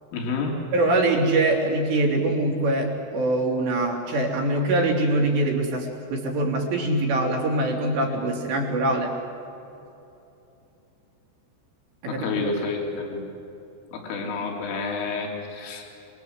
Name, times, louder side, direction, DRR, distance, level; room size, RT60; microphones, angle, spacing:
voice 1, 0.1-0.6 12.1-13.2 13.9-15.9, left 3 dB, 70° left, 0 dB, 5.7 m, -29 dB
voice 2, 0.7-9.2 12.0-12.4, right 2 dB, 60° right, -1 dB, 5.3 m, -23 dB
29.5 x 22.0 x 8.0 m, 2.9 s
omnidirectional pair, 6.0 m